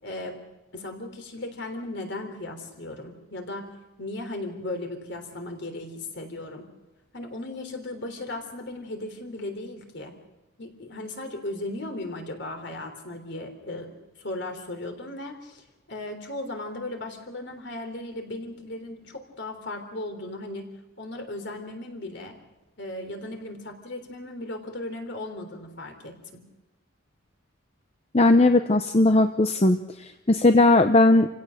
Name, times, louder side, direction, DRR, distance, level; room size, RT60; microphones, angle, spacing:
voice 1, 0.0-0.4 0.7-3.7 4.0-6.7 7.1-10.1 10.6-13.9 14.2-20.7 21.0-22.4 22.8-26.4, left 2 dB, 55° left, 5 dB, 3.5 m, -36 dB
voice 2, 28.1-29.8 30.3-31.3, left 2 dB, 30° left, 8 dB, 0.7 m, -18 dB
28.5 x 16.5 x 6.5 m, 1.0 s
head